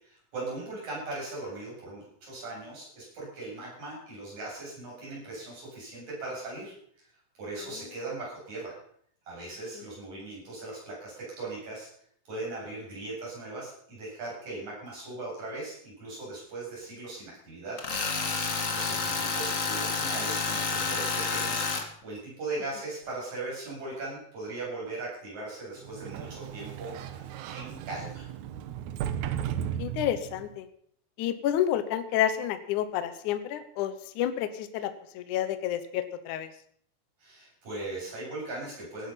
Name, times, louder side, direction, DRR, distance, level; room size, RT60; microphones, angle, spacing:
voice 1, 0.0-6.7 7.4-8.8 9.3-11.9 12.3-17.8 18.7-28.3 37.2-39.1, right 2 dB, 50° right, -4 dB, 9.3 m, -39 dB
Tools, 17.8-21.8, left 4 dB, 45° left, 1.0 m, -29 dB
Sliding door, 25.8-30.5, right 10 dB, 75° right, 1.9 m, -35 dB
voice 2, 29.8-30.7 31.2-36.5, left 11 dB, 70° left, 11 dB, 2.3 m, -30 dB
17.0 x 11.0 x 5.8 m, 0.63 s
omnidirectional pair, 4.1 m